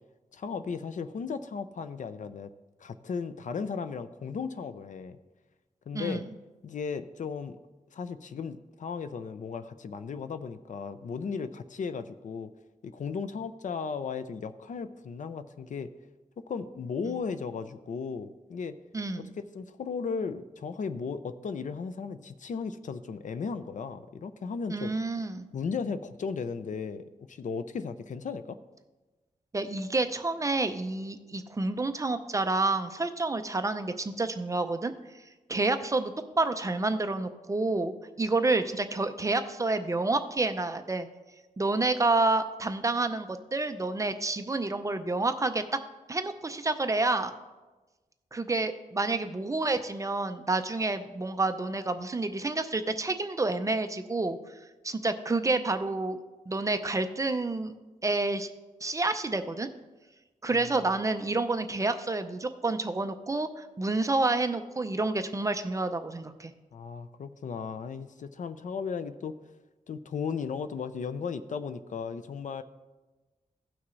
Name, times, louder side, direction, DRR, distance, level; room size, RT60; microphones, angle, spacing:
voice 1, 0.3-2.5 2.8-5.2 5.9-6.2 6.6-7.6 7.9-12.5 12.8-15.9 16.5-18.8 19.2-24.9 25.5-28.6 60.5-60.7 66.7-69.3 69.9-72.6, left 5 dB, 60° left, 12 dB, 0.5 m, -36 dB
voice 2, 5.9-6.3 18.9-19.3 24.7-25.5 29.5-34.9 35.5-41.1 41.6-45.6 46.1-47.3 48.3-54.4 54.8-56.2 56.5-57.7 58.0-58.5 58.8-59.7 60.4-66.5, right 2 dB, 20° right, 8 dB, 0.5 m, -29 dB
16.5 x 6.0 x 3.2 m, 1.2 s
wide cardioid pair, 155°, 14 cm